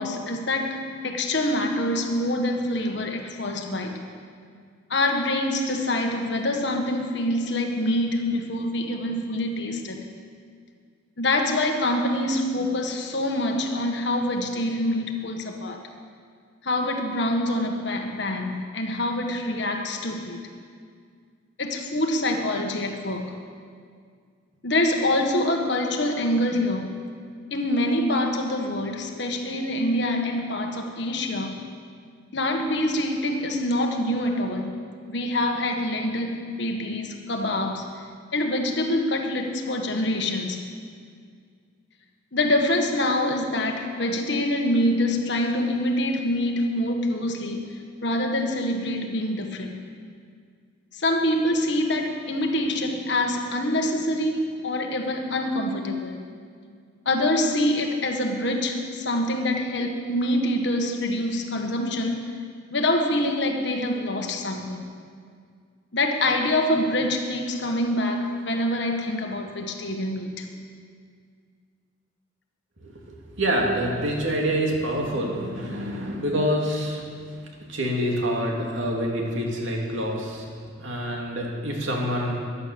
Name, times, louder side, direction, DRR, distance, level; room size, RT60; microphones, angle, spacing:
voice 1, 0.0-4.0 4.9-10.0 11.2-15.8 16.6-20.4 21.6-23.3 24.6-27.0 27.5-31.6 32.3-34.7 35.1-37.9 38.3-40.6 42.3-47.7 48.0-49.7 50.9-56.2 57.0-62.3 62.7-64.8 65.9-70.5, left 1 dB, 60° left, 3 dB, 1.5 m, -25 dB
voice 2, 72.8-77.0 77.7-80.5 80.8-82.4, equal, 70° right, -1 dB, 2.6 m, -26 dB
14.0 x 11.0 x 6.9 m, 2.1 s
head